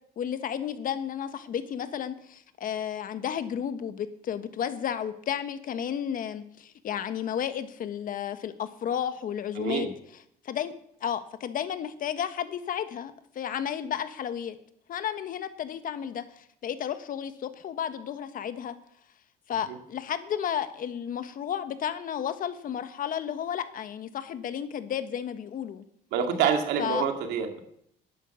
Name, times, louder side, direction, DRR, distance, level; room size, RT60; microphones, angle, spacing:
voice 1, 0.2-9.9 10.4-10.7 11.0-14.6 14.9-18.7 19.5-25.8 26.8-27.0, left 9 dB, 55° left, 11 dB, 1.3 m, -32 dB
voice 2, 9.6-9.9 19.7-19.8 26.1-27.6, right 7 dB, 90° right, 5 dB, 2.2 m, -27 dB
11.0 x 10.0 x 7.1 m, 0.70 s
cardioid pair, 110°, 17 cm